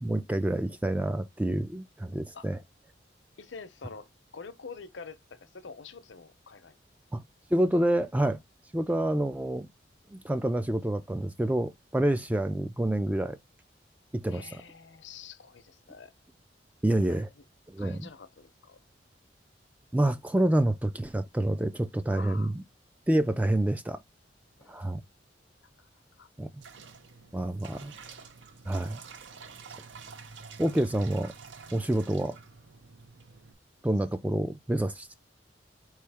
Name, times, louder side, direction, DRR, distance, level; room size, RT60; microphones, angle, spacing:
voice 1, 0.0-2.6 7.1-7.2 7.5-8.4 8.7-9.7 10.1-13.4 14.1-14.6 16.8-17.3 17.7-18.1 19.9-22.6 23.1-24.0 24.7-25.0 26.4-26.5 27.3-27.9 28.7-29.0 30.6-31.3 31.7-32.4 33.8-35.1, right 1 dB, 10° right, 0.3 m, -28 dB
voice 2, 3.4-6.8 14.3-16.1 17.1-17.2 17.8-18.8 22.1-22.5 24.6-24.8 25.8-26.3 27.6-28.0, left 5 dB, 80° left, 0.7 m, -47 dB
sound 1, 26.6-33.5, right 5 dB, 85° right, 0.7 m, -48 dB
4.2 x 3.2 x 3.3 m
head